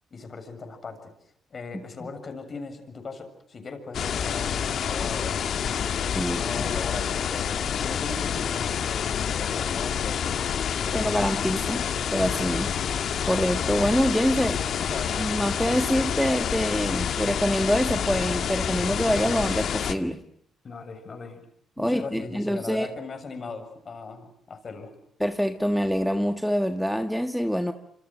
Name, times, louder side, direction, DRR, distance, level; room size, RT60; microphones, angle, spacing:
voice 1, 0.1-1.1 1.5-5.4 5.9-10.3 10.8-11.5 14.8-15.3 20.6-21.5 21.8-24.9, left 4 dB, 45° left, 7 dB, 7.3 m, -39 dB
sound 1, 3.9-19.9, left 8 dB, 65° left, 2.0 m, -28 dB
voice 2, 10.9-11.8 12.1-12.7 13.3-14.6 15.2-20.2 21.8-22.9 25.2-27.7, equal, ahead, 7 dB, 1.7 m, -25 dB
26.5 x 26.0 x 7.7 m, 0.68 s
cardioid pair, 75°, 0 cm